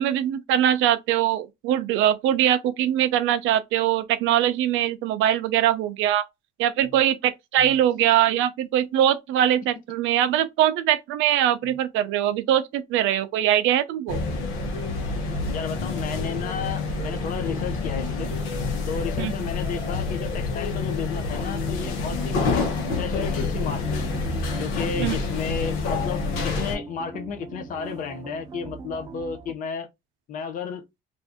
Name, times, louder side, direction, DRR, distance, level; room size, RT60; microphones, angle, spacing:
voice 1, 0.0-6.3 6.6-14.2 19.2-19.3 25.0-25.2, right 11 dB, 75° right, 0.5 m, -22 dB
sound 1, 14.1-26.7, left 4 dB, 90° left, 1.0 m, -28 dB
voice 2, 15.5-18.3 18.9-24.1 24.6-29.9 30.3-30.8, left 6 dB, 40° left, 0.6 m, -33 dB
sound 2, 21.8-29.5, right 4 dB, 20° right, 0.4 m, -41 dB
2.6 x 2.5 x 3.4 m
cardioid pair, 160°, 20 cm